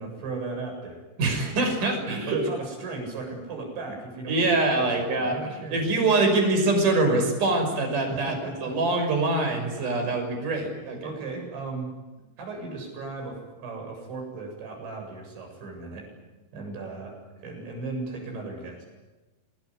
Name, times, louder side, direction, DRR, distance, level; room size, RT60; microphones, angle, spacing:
voice 1, 0.0-1.0 2.3-4.4 4.7-5.8 8.1-8.7 9.8-9.9 11.0-11.9 12.4-16.1 16.5-18.8, right 3 dB, 70° right, 2 dB, 10.5 m, -36 dB
voice 2, 1.2-2.4 4.3-8.4 8.6-11.0, right 2 dB, 40° right, 4 dB, 7.2 m, -24 dB
28.5 x 20.0 x 10.0 m, 1.1 s
omnidirectional pair, 5.5 m